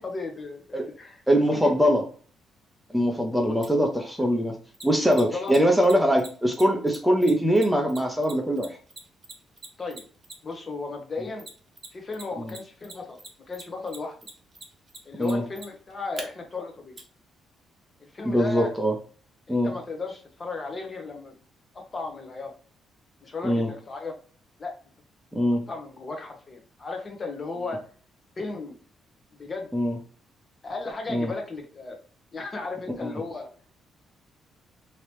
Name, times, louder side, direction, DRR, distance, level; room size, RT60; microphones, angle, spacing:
voice 1, 0.0-1.2 1.5-1.8 3.4-3.9 4.2-4.3 4.9-5.5 9.8-10.1 10.4-11.4 11.9-13.2 13.5-14.3 15.0-17.0 18.0-18.7 19.5-21.4 21.7-22.5 23.2-24.2 24.6-24.7 25.7-27.8 28.4-28.8 29.3-29.8 30.6-32.0 32.3-33.5, left 3 dB, 35° left, 3 dB, 1.0 m, -35 dB
voice 2, 1.3-2.0 2.9-4.5 4.8-8.8 12.4-12.5 15.2-15.4 18.2-18.9 19.5-19.7 23.4-23.7 25.3-25.6 29.7-30.0 31.1-31.3 33.0-33.1, equal, ahead, 2 dB, 0.7 m, -22 dB
Mechanisms, 3.6-3.7 4.7-10.6 11.4-12.2 12.5-16.2 17.0-17.1, right 3 dB, 30° right, 0.9 m, -42 dB
3.0 x 2.8 x 3.2 m, 0.42 s
cardioid pair, 90°, 0 cm